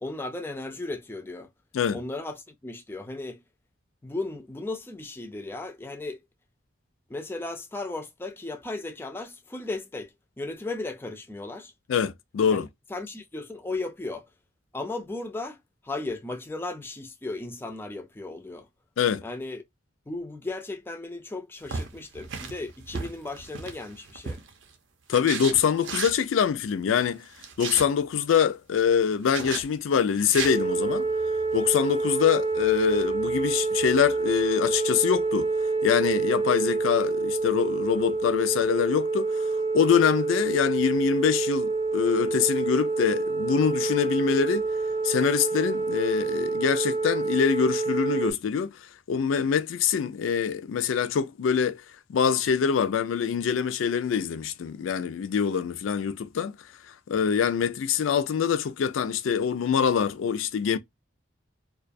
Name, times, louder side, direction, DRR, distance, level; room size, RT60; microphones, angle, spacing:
voice 1, 0.0-1.5 1.9-3.4 4.0-6.2 7.1-11.7 12.5-14.3 14.7-15.6 15.8-18.7 19.2-19.6 20.1-24.4, left 2 dB, 10° left, 0.3 m, -36 dB
voice 2, 11.9-12.7 19.0-19.2 25.1-27.3 27.6-31.1 31.5-35.5 35.8-39.4 39.7-44.7 45.0-48.7 49.1-51.8 52.1-56.5 57.1-60.8, left 7 dB, 90° left, 0.4 m, -24 dB
sound 1, 21.6-24.6 25.1-26.2 27.2-27.9 29.3-29.6 30.2-30.5, right 5 dB, 70° right, 0.6 m, -35 dB
sound 2, 30.4-48.3, right 3 dB, 25° right, 0.6 m, -27 dB
2.2 x 2.2 x 2.5 m
head